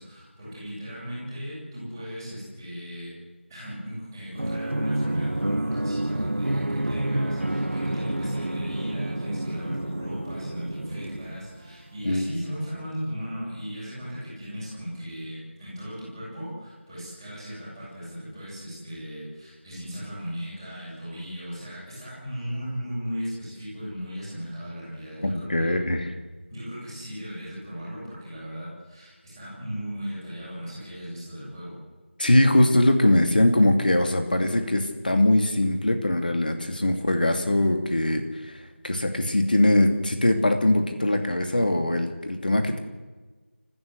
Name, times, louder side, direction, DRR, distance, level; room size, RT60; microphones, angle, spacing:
voice 1, 0.0-3.1 3.5-25.7 26.5-31.8, equal, 5° right, -15 dB, 7.6 m, -37 dB
sound 1, 4.3-11.9, right 1 dB, 70° right, 1.6 m, -29 dB
voice 2, 25.2-26.1 32.2-38.6 38.8-42.8, left 1 dB, 45° left, 6 dB, 2.7 m, -22 dB
27.5 x 15.5 x 8.3 m, 1.3 s
figure-of-eight pair, 175°, 7 cm